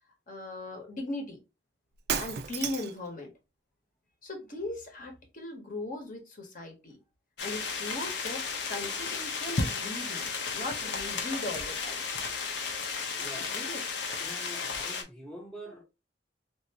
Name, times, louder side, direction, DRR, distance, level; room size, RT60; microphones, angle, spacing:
voice 1, 0.3-1.4 2.2-3.3 4.2-7.0 7.4-10.3 10.5-12.0 13.5-13.8, left 2 dB, 50° left, 1.0 m, -38 dB
Shatter, 1.9-3.1, right 7 dB, 60° right, 0.4 m, -32 dB
sound 1, 7.4-15.0, left 4 dB, 75° left, 0.7 m, -34 dB
voice 2, 13.2-13.6 14.2-15.8, right 1 dB, 5° left, 0.6 m, -45 dB
3.4 x 2.6 x 2.8 m
head